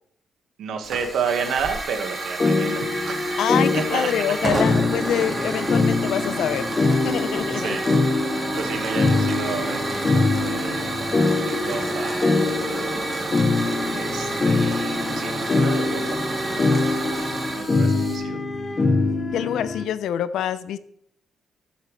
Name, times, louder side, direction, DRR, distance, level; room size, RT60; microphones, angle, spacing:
voice 1, 0.6-3.4 3.7-4.1 7.5-7.8 8.3-11.0 11.3-13.0 13.9-18.4, right 6 dB, 75° right, 5 dB, 1.7 m, -32 dB
Hiss / Fire, 0.8-18.2, right 2 dB, 25° right, 2.1 m, -30 dB
sound 1, 2.4-19.8, left 3 dB, 25° left, 0.9 m, -24 dB
voice 2, 3.4-6.8 7.0-7.8 19.3-20.8, left 10 dB, 85° left, 15 dB, 0.6 m, -26 dB
13.5 x 9.1 x 3.3 m, 0.70 s
cardioid pair, 155°, 0 cm